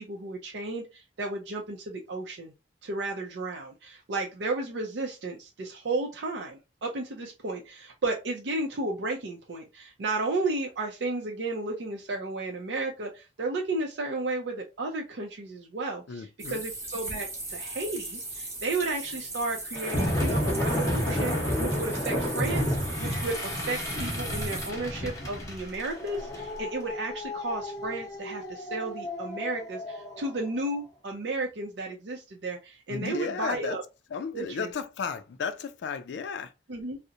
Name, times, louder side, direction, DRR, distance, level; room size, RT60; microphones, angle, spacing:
voice 1, 0.0-2.5 2.8-33.8 34.3-34.7 36.7-37.0, right 2 dB, 75° right, 0.5 m, -33 dB
voice 2, 16.1-16.6 32.9-33.8 34.1-36.5, left 6 dB, 70° left, 0.3 m, -34 dB
sound 1, 16.4-24.7, right 2 dB, 15° right, 0.8 m, -38 dB
sound 2, 19.7-30.3, equal, 20° left, 0.7 m, -31 dB
2.7 x 2.0 x 2.4 m
head